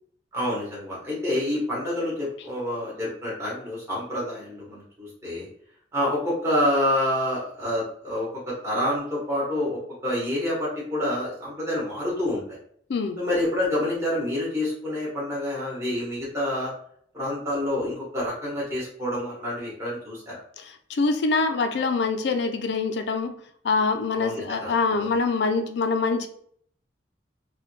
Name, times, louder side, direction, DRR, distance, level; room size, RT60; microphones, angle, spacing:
voice 1, 0.3-5.5 5.9-12.6 13.2-16.7 17.1-20.4 24.2-24.7, left 1 dB, 15° right, 1.0 m, -28 dB
voice 2, 20.6-23.4 23.6-26.3, left 4 dB, 70° left, 0.4 m, -25 dB
3.2 x 2.2 x 3.1 m
head